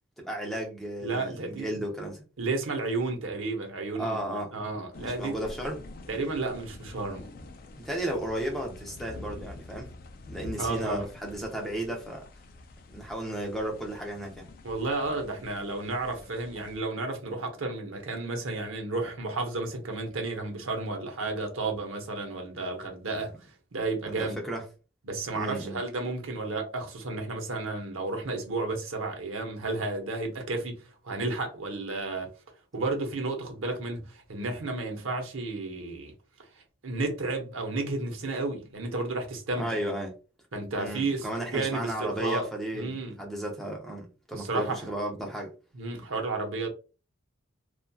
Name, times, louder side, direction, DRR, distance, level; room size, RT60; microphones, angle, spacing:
voice 1, 0.2-2.2 3.9-4.6 5.0-5.8 7.8-9.9 10.3-12.2 12.9-14.5 24.1-24.6 25.3-25.8 39.6-40.1 40.8-45.5, right 1 dB, ahead, 0.6 m, -34 dB
voice 2, 1.0-1.8 2.4-5.3 6.1-7.3 10.6-11.1 14.6-23.3 23.7-24.4 25.1-32.3 32.7-36.1 36.8-39.8 40.5-41.3 41.5-42.4 42.7-43.2 44.3-44.8 45.7-46.7, right 3 dB, 90° right, 0.8 m, -32 dB
sound 1, 4.9-16.8, left 2 dB, 45° left, 0.3 m, -46 dB
2.7 x 2.3 x 2.2 m
head